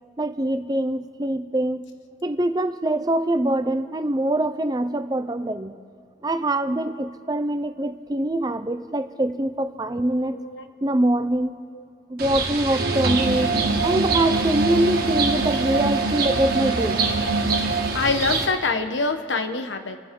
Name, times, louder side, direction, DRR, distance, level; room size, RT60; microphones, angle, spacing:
voice 1, 0.2-1.8 2.2-5.7 6.2-10.4 10.8-11.5 12.1-13.5 13.8-17.0, right 1 dB, 20° right, 10 dB, 0.5 m, -24 dB
voice 2, 10.3-10.7 11.7-11.9 14.3-14.4 17.9-20.0, left 3 dB, 75° left, 7 dB, 1.1 m, -25 dB
Bird, 12.2-18.5, right 4 dB, 50° right, 1.7 m, -27 dB
sound 1, 12.8-18.0, right 3 dB, 80° right, 0.8 m, -25 dB
28.0 x 9.4 x 3.8 m, 2.4 s
head